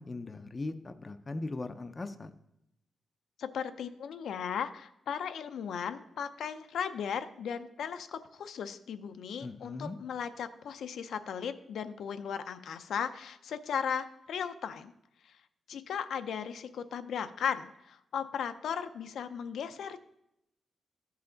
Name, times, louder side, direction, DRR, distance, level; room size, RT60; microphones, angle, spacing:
voice 1, 0.0-2.3 9.4-10.0, left 2 dB, 20° left, 9 dB, 0.4 m, -39 dB
voice 2, 3.4-14.9 15.2-15.3 15.7-20.0, left 7 dB, 80° left, 10 dB, 0.5 m, -36 dB
14.5 x 5.7 x 3.8 m, 0.83 s
wide cardioid pair, 180°, 0 cm